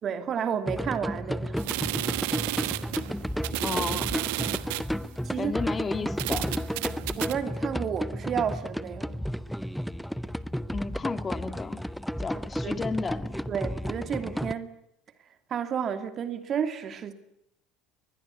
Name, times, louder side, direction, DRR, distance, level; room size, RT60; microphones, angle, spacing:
voice 1, 0.0-1.6 5.2-5.6 7.2-9.2 12.6-12.8 13.5-14.8 15.5-17.1, right 7 dB, 45° right, 2.7 m, -31 dB
sound 1, 0.7-14.5, equal, ahead, 1.0 m, -32 dB
sound 2, 1.6-4.9 5.6-5.7 6.2-7.3, right 19 dB, 75° right, 1.1 m, -32 dB
voice 2, 3.6-4.1 5.4-6.6 10.7-11.8 12.2-13.3, left 4 dB, 30° left, 2.5 m, -33 dB
23.0 x 20.5 x 9.8 m
hypercardioid pair, 75°, 0 cm